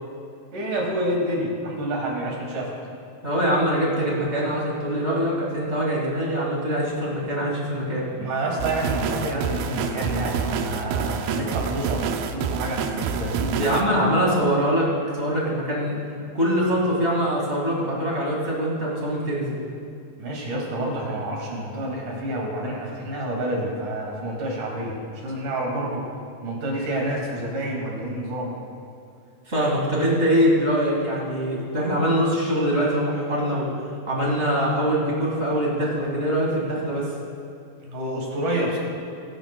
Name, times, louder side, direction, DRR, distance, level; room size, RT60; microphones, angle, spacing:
voice 1, 0.5-2.7 8.1-13.9 20.2-26.1 26.4-28.5 37.8-38.8, right 1 dB, 55° right, -2 dB, 3.4 m, -28 dB
voice 2, 3.2-8.1 13.6-16.0 16.3-19.6 29.5-33.7 34.1-37.1, equal, 35° right, -4 dB, 1.0 m, -23 dB
sound 1, 8.6-13.8, right 6 dB, 80° right, 2.4 m, -27 dB
21.5 x 11.0 x 2.2 m, 2.5 s
omnidirectional pair, 4.6 m